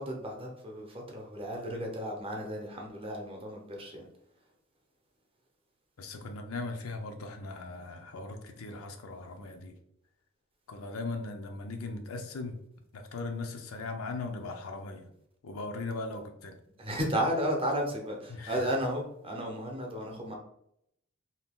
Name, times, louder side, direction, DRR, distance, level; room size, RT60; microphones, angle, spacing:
voice 1, 0.0-4.1 16.8-20.3, equal, 25° right, 0 dB, 0.7 m, -33 dB
voice 2, 6.0-9.8 10.7-12.6 12.9-15.1 15.4-16.5 18.3-18.7, left 3 dB, 85° left, 5 dB, 0.5 m, -39 dB
2.7 x 2.3 x 3.5 m, 0.74 s
head